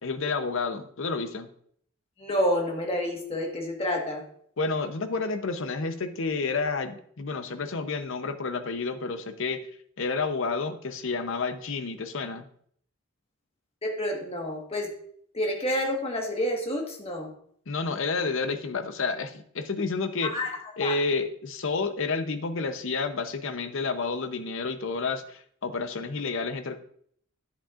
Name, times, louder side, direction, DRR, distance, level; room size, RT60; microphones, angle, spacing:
voice 1, 0.0-1.5 4.6-9.6 10.0-12.5 17.7-20.4 20.8-26.8, left 4 dB, 60° left, 10 dB, 0.7 m, -30 dB
voice 2, 2.2-4.2 13.8-14.9 15.3-17.3 20.2-21.0, equal, 25° left, 1 dB, 1.4 m, -29 dB
10.0 x 8.4 x 2.5 m, 0.63 s
head